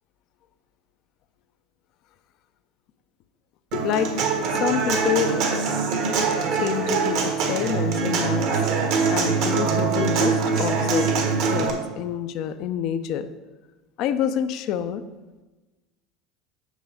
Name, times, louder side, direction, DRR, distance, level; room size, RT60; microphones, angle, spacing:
voice 1, 3.7-4.1 4.6-5.3 6.6-8.5 9.1-11.1 11.5-13.3 14.0-15.0, left 9 dB, 60° left, 12 dB, 0.5 m, -27 dB
Human voice / Acoustic guitar, 3.7-11.7, right 5 dB, 65° right, 1.3 m, -23 dB
8.2 x 6.3 x 3.5 m, 1.2 s
hypercardioid pair, 85°, 0 cm